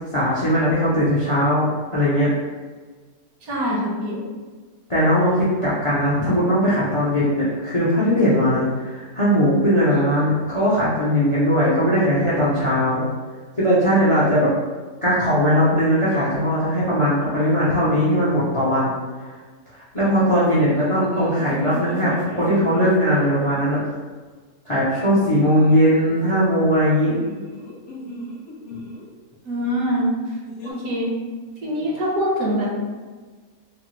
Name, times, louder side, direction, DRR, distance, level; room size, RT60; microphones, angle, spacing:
voice 1, 0.1-2.3 4.9-13.0 13.6-14.5 15.0-19.0 19.9-23.8 24.7-27.2, equal, 40° left, -9 dB, 0.4 m, -19 dB
voice 2, 3.4-4.2 29.4-30.1 30.6-31.1 31.6-32.9, equal, 75° right, -4 dB, 1.2 m, -24 dB
sound 1, 20.6-23.6 25.1-26.2 27.0-29.1 30.5-30.7, left 1 dB, 60° left, 0.9 m, -38 dB
3.3 x 2.1 x 3.0 m, 1.4 s
omnidirectional pair, 1.6 m